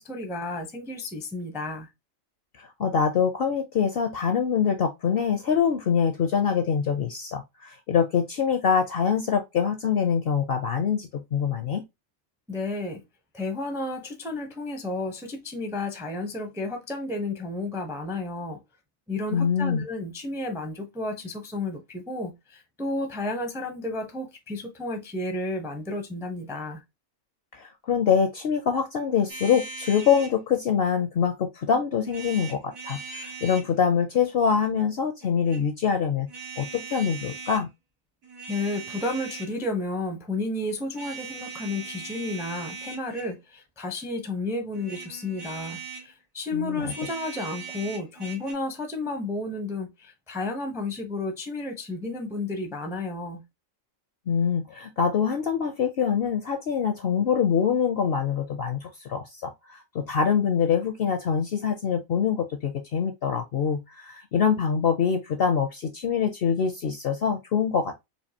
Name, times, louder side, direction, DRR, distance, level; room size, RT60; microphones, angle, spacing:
voice 1, 0.0-1.9 12.5-13.0 13.3-18.6 19.1-26.8 38.5-53.4, left 2 dB, 5° right, 0.3 m, -32 dB
voice 2, 2.6-11.8 19.3-19.8 27.5-36.3 36.6-37.7 46.5-46.9 54.3-68.0, left 7 dB, 65° left, 0.6 m, -25 dB
sound 1, 29.3-30.4 32.1-33.7 35.2-35.6 36.3-37.6 38.2-39.6 40.9-43.4 44.7-46.1 46.8-48.5, right 5 dB, 85° right, 1.9 m, -40 dB
4.5 x 2.6 x 2.7 m
omnidirectional pair, 1.4 m